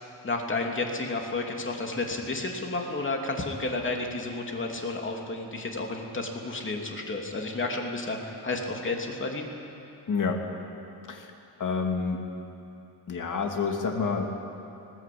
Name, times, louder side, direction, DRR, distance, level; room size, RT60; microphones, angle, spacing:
voice 1, 0.2-9.5, left 2 dB, 25° left, 1 dB, 2.8 m, -31 dB
voice 2, 10.1-10.4 11.1-11.3 11.6-12.2 13.1-14.3, left 5 dB, 45° left, 2 dB, 2.7 m, -28 dB
20.5 x 18.5 x 8.7 m, 2.8 s
cardioid pair, 125°, 45 cm